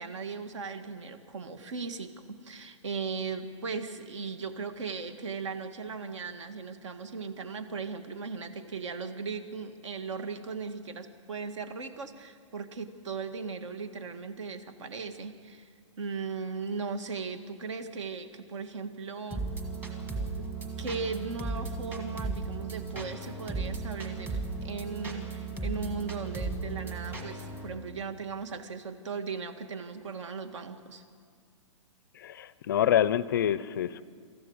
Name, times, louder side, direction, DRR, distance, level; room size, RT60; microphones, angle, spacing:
voice 1, 0.0-15.7 16.0-19.4 20.8-31.0, right 5 dB, 65° right, 9 dB, 1.7 m, -37 dB
sound 1, 19.3-27.7, right 3 dB, 10° right, 1.5 m, -36 dB
voice 2, 32.1-34.0, left 10 dB, 40° left, 17 dB, 0.5 m, -26 dB
26.5 x 14.0 x 8.0 m, 2.2 s
hypercardioid pair, 175°, 17 cm